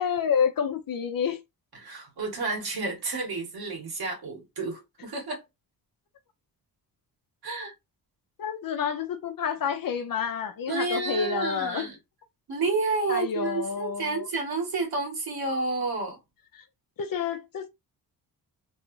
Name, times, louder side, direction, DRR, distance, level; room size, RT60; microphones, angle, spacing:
voice 1, 0.0-1.4 8.4-11.9 13.1-14.3 16.5-16.6 17.0-17.7, left 7 dB, 55° left, 0.7 m, -29 dB
voice 2, 1.8-5.4 7.4-7.7 10.7-12.0 12.5-16.2, right 3 dB, 65° right, 1.7 m, -30 dB
3.2 x 2.5 x 3.1 m
cardioid pair, 90°, 40 cm